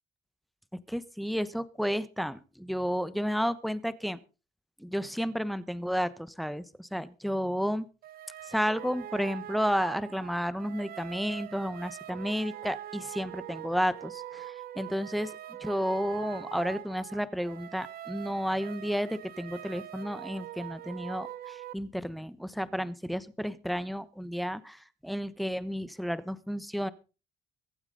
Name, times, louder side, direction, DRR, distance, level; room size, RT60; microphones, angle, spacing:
voice 1, 0.9-4.2 4.8-7.9 8.5-26.9, equal, ahead, 14 dB, 1.1 m, -32 dB
sound 1, 8.0-21.7, right 12 dB, 65° right, 1.0 m, -43 dB
23.0 x 8.9 x 3.9 m, 0.34 s
cardioid pair, 110°, 17 cm